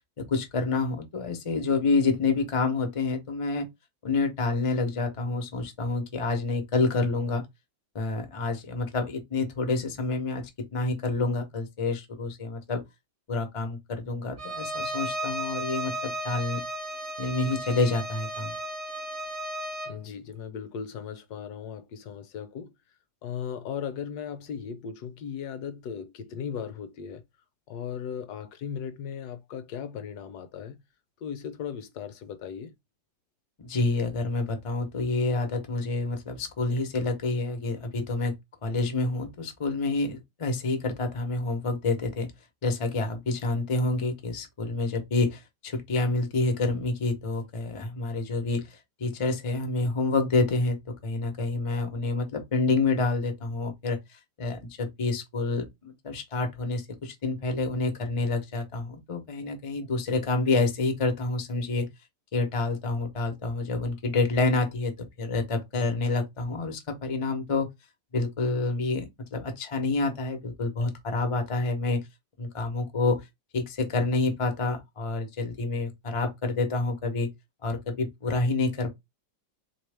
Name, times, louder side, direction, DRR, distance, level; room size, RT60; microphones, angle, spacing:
voice 1, 0.2-3.7 4.0-7.4 7.9-12.8 13.3-16.6 17.2-18.5 33.6-38.3 38.6-42.3 42.6-54.0 54.4-61.9 62.3-67.7 68.1-72.0 72.4-73.2 73.5-77.3 77.6-78.9, left 3 dB, 55° left, 0.3 m, -28 dB
Bowed string instrument, 14.4-20.0, right 1 dB, 45° right, 0.7 m, -34 dB
voice 2, 19.9-22.7 23.2-27.2 27.7-30.8 31.2-32.7, left 7 dB, 70° left, 1.0 m, -37 dB
3.5 x 3.0 x 3.2 m
omnidirectional pair, 2.0 m